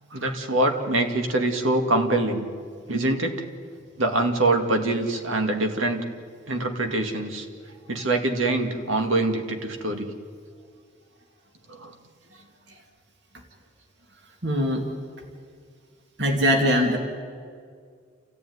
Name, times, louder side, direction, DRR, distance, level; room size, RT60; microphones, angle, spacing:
voice 1, 0.1-2.5 2.9-3.4 4.0-6.0 6.5-7.5 7.9-10.1 11.7-11.9, right 2 dB, 80° right, 5 dB, 2.3 m, -24 dB
voice 2, 14.4-14.8 16.2-17.0, equal, 55° right, 2 dB, 2.5 m, -21 dB
29.0 x 14.5 x 9.6 m, 2.1 s
head